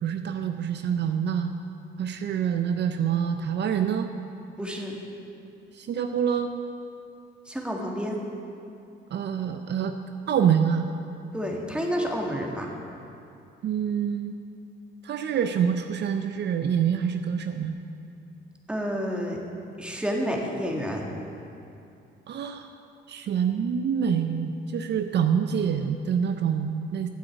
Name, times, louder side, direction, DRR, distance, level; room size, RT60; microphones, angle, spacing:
voice 1, 0.0-1.5 2.0-4.1 5.7-6.5 9.1-10.0 10.3-10.9 13.6-14.4 15.0-17.7 22.3-22.7 23.1-27.1, right 8 dB, 60° right, 7 dB, 0.6 m, -26 dB
voice 2, 4.6-5.0 7.5-8.2 11.3-12.7 18.7-19.4 19.8-21.1, equal, 5° right, 0 dB, 1.8 m, -29 dB
9.6 x 7.9 x 8.0 m, 2.6 s
cardioid pair, 90°, 20 cm